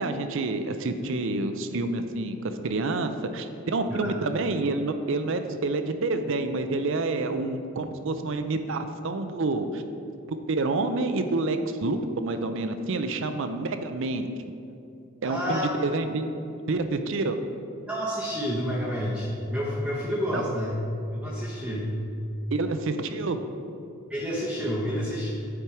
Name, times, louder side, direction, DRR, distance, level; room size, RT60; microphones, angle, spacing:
voice 1, 0.0-2.4 2.6-9.8 10.3-14.3 15.2-16.2 16.7-17.4 20.3-20.4 22.5-23.4, right 2 dB, 65° right, 8 dB, 0.5 m, -28 dB
voice 2, 15.2-15.7 17.9-20.8 21.1-21.9 24.1-25.3, equal, 5° right, -7 dB, 0.8 m, -29 dB
8.6 x 4.5 x 4.8 m, 2.6 s
head